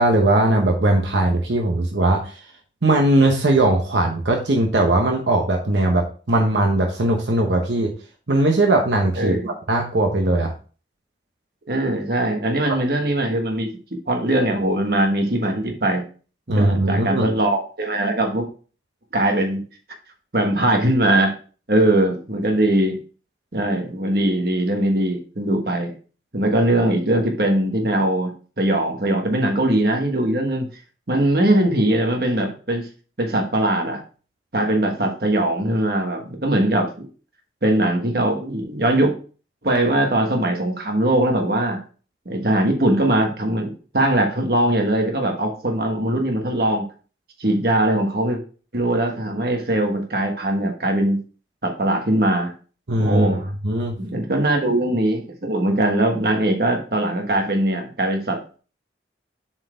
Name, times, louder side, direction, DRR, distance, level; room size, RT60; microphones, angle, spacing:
voice 1, 0.0-2.3 2.8-7.9 8.3-10.5 16.5-17.3 52.9-53.3 53.6-54.0, right 1 dB, 80° right, 1 dB, 0.9 m, -19 dB
voice 2, 9.2-9.5 11.7-13.7 14.1-16.0 16.5-18.5 19.1-19.6 20.3-21.3 21.7-23.0 23.5-25.9 26.3-30.7 31.1-32.9 33.2-34.0 34.5-37.1 37.6-39.1 39.6-41.8 42.2-46.9 47.4-48.4 48.7-51.2 51.6-52.5 53.0-53.5 54.0-58.6, right 1 dB, 55° right, 3 dB, 1.3 m, -21 dB
7.3 x 4.5 x 3.3 m, 0.38 s
head